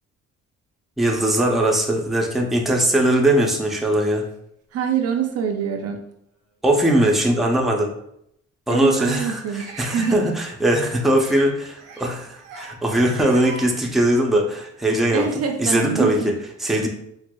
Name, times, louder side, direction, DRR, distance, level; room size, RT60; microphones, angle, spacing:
voice 1, 1.0-4.2 6.6-7.9 8.7-15.3 15.6-16.3 16.6-16.9, right 1 dB, ahead, -1 dB, 0.5 m, -20 dB
voice 2, 4.7-6.0 8.7-10.2 15.1-16.3, right 7 dB, 55° right, 3 dB, 0.5 m, -25 dB
sound 1, 4.7-4.8 5.6-5.7 7.3-7.4 9.5-10.2 11.1-11.4 11.8-12.1 12.3-12.7 13.0-13.7, right 3 dB, 90° right, 0.7 m, -40 dB
4.5 x 2.0 x 2.2 m, 0.74 s
cardioid pair, 90°, 30 cm